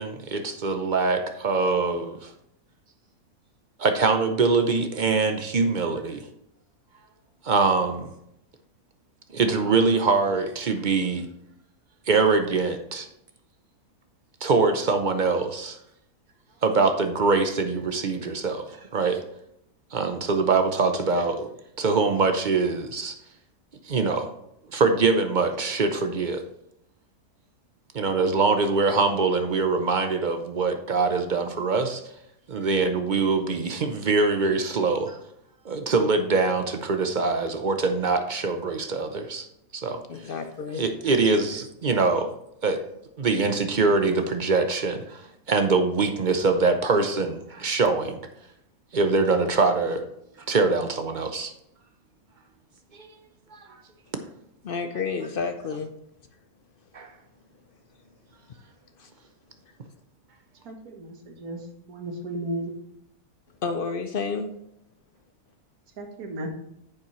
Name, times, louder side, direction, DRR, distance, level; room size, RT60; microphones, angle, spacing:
voice 1, 0.0-2.3 3.8-6.3 7.4-8.1 9.3-11.3 12.1-13.1 14.4-15.8 16.6-19.2 19.9-21.5 21.8-23.1 23.9-24.3 24.7-26.4 27.9-32.0 32.5-35.2 35.6-39.5 39.7-40.0 40.7-42.3 42.6-42.8 43.2-45.2 45.5-48.2 48.9-50.1 50.5-51.5 53.5-53.6 56.9-57.1, right 4 dB, 45° right, 7 dB, 0.6 m, -23 dB
voice 2, 40.1-40.9 54.6-55.9 59.0-59.1 63.6-64.5, left 5 dB, 65° left, 7 dB, 0.5 m, -30 dB
voice 3, 60.7-61.1 61.4-61.6 61.9-62.7 66.0-66.5, right 1 dB, 65° right, 3 dB, 1.8 m, -34 dB
9.7 x 7.2 x 3.1 m, 0.77 s
omnidirectional pair, 1.7 m